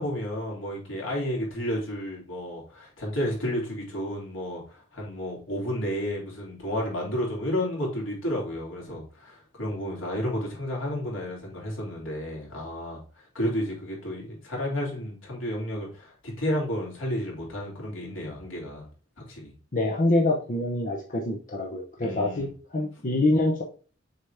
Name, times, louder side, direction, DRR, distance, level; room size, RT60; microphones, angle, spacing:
voice 1, 0.0-18.9 19.3-19.5 22.0-22.5, equal, 85° left, 3.1 m, -31 dB
voice 2, 19.7-23.6, left 2 dB, 40° left, 0.8 m, -25 dB
6.6 x 4.2 x 3.4 m
head